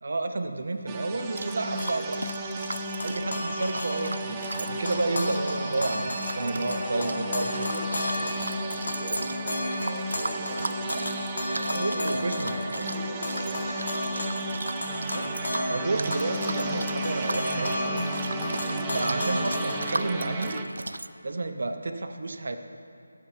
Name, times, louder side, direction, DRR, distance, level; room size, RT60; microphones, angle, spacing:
voice 1, 0.0-2.3 3.0-7.7 10.8-11.1 11.7-12.6 15.1-15.4 15.7-18.0 18.9-20.6 21.2-22.6, right 2 dB, 50° right, 7 dB, 0.7 m, -31 dB
sound 1, 0.9-20.6, right 1 dB, 10° right, 0.4 m, -34 dB
sound 2, 1.4-21.1, right 2 dB, 85° right, 0.3 m, -38 dB
sound 3, 1.8-4.3 4.5-20.0, left 1 dB, 55° left, 2.1 m, -34 dB
voice 2, 6.4-11.2 11.5-14.3 18.6-18.9, left 1 dB, 10° left, -9 dB, 1.2 m, -39 dB
11.0 x 7.7 x 4.4 m, 2.6 s
figure-of-eight pair, 175°, 0 cm